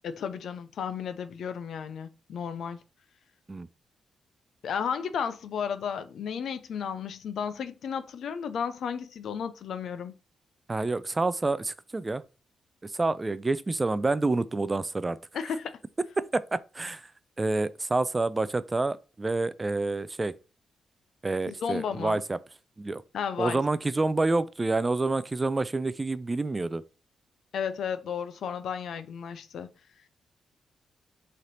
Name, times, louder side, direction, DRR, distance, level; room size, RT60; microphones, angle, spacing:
voice 1, 0.0-2.8 4.6-10.2 15.3-15.8 21.5-22.2 23.1-23.6 27.5-29.7, left 7 dB, 75° left, 0.4 m, -33 dB
voice 2, 10.7-12.2 12.8-15.2 16.3-17.0 17.4-20.3 21.2-22.4 22.8-23.0 23.4-26.8, right 3 dB, 25° right, 0.3 m, -28 dB
3.2 x 2.8 x 3.9 m
cardioid pair, 65°, 0 cm